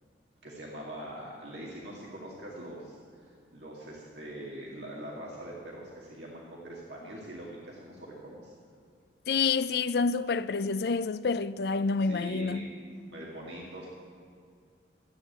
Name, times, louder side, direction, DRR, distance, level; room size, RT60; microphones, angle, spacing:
voice 1, 0.4-8.5 12.0-12.7 13.1-14.0, right 1 dB, 75° right, 2.2 m, -43 dB
voice 2, 9.3-12.7, left 4 dB, 60° left, 0.4 m, -28 dB
14.0 x 8.6 x 8.2 m
head